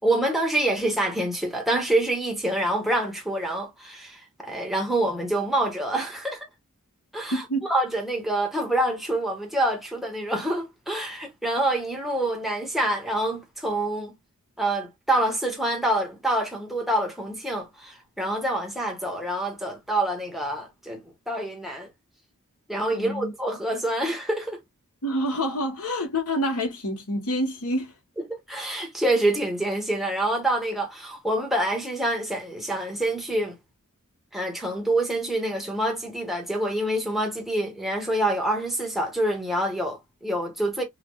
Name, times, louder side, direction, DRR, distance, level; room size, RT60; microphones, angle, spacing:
voice 1, 0.0-6.5 7.1-14.2 14.6-21.9 22.7-24.6 28.3-33.5 34.3-40.8, right 1 dB, ahead, 1.4 m, -26 dB
voice 2, 7.3-7.7 22.9-23.3 25.0-27.9, equal, 85° left, 1.6 m, -27 dB
5.8 x 2.6 x 2.4 m
head